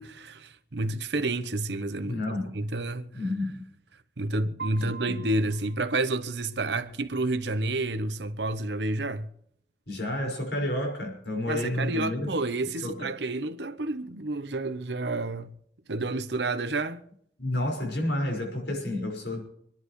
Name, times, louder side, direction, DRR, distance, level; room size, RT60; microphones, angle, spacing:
voice 1, 0.0-3.1 4.2-9.3 11.5-15.5 15.9-17.1, right 2 dB, 85° right, 1.0 m, -30 dB
voice 2, 2.1-2.6 3.1-3.6 4.8-5.1 9.9-12.4 12.8-13.1 17.4-19.4, left 1 dB, 80° left, 5.6 m, -30 dB
Piano, 4.6-6.6, right 5 dB, 65° right, 2.5 m, -44 dB
26.0 x 11.0 x 3.2 m
head